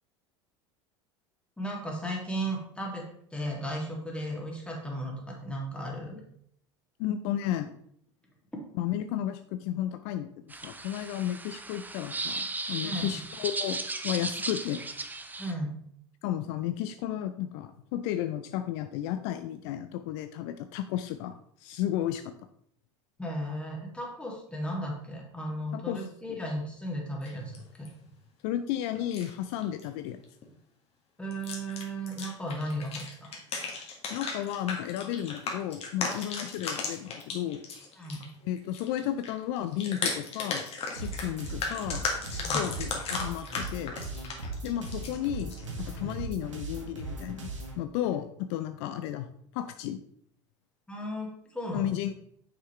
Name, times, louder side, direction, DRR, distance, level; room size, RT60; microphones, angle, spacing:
voice 1, 1.6-3.0 3.3-6.2 12.8-13.1 15.4-15.7 23.2-27.9 31.2-33.3 38.0-38.3 42.4-42.7 45.6-46.1 50.9-51.9, equal, 5° left, -1 dB, 2.3 m, -35 dB
voice 2, 7.0-7.7 8.8-14.9 16.2-22.3 25.7-26.0 26.3-26.4 28.4-30.2 34.1-37.6 38.4-40.7 40.9-42.1 42.5-43.9 44.6-47.5 47.8-49.3 49.5-50.0 51.7-52.1, left 11 dB, 60° left, 9 dB, 0.5 m, -33 dB
sound 1, 10.5-15.5, right 3 dB, 10° right, 0.7 m, -36 dB
sound 2, 27.2-27.9 29.0-29.3 29.6-29.9 30.2-30.5 31.3-38.3 38.6-45.7, left 4 dB, 40° left, 1.8 m, -35 dB
sound 3, 41.0-47.8, right 3 dB, 90° right, 1.6 m, -39 dB
6.6 x 5.9 x 3.2 m, 0.67 s
hypercardioid pair, 80°, 16 cm